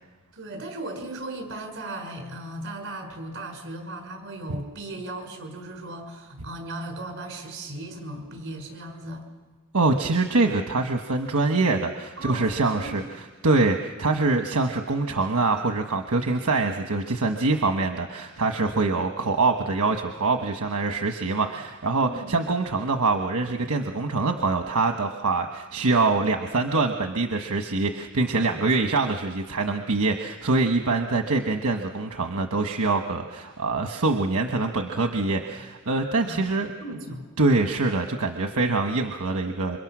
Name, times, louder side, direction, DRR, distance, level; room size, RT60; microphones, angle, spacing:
voice 1, 0.3-9.3 12.2-13.0 22.0-22.4 28.4-28.7 36.2-37.3, right 1 dB, 55° right, 3 dB, 6.0 m, -37 dB
voice 2, 9.7-13.0 13.4-36.7 37.4-39.8, right 3 dB, 80° right, 4 dB, 1.3 m, -24 dB
28.5 x 25.5 x 6.2 m, 1.3 s
head